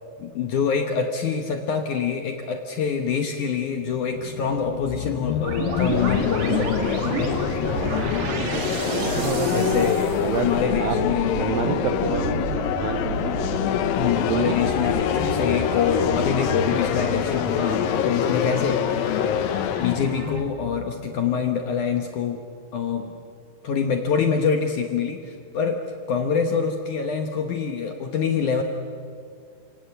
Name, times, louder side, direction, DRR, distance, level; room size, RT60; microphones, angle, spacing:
voice 1, 0.2-7.4 9.3-11.6 14.0-22.4 22.7-23.2 23.6-25.8 26.1-28.6, left 6 dB, 65° left, 4 dB, 2.0 m, -26 dB
sound 1, 3.8-21.7, left 11 dB, 80° left, 2.0 m, -26 dB
sound 2, 5.4-20.4, right 3 dB, 50° right, 3.2 m, -30 dB
voice 2, 8.9-10.5 10.8-11.0 11.3-13.4 14.3-14.6, right 8 dB, 80° right, 8 dB, 2.1 m, -28 dB
29.5 x 18.5 x 7.9 m, 2.3 s
omnidirectional pair, 5.0 m